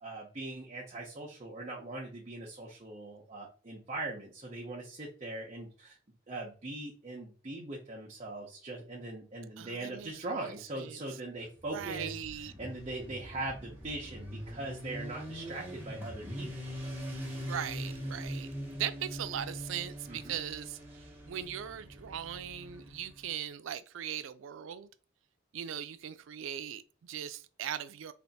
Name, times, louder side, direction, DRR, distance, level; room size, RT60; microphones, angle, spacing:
voice 1, 0.0-6.0 6.3-16.7 20.1-20.4, right 2 dB, 35° right, 0.7 m, -41 dB
voice 2, 9.6-11.0 11.7-12.5 17.3-24.9 25.5-28.1, right 9 dB, 85° right, 0.4 m, -40 dB
Motorcycle, 11.5-23.2, equal, 10° right, 1.1 m, -42 dB
3.3 x 2.5 x 4.0 m
head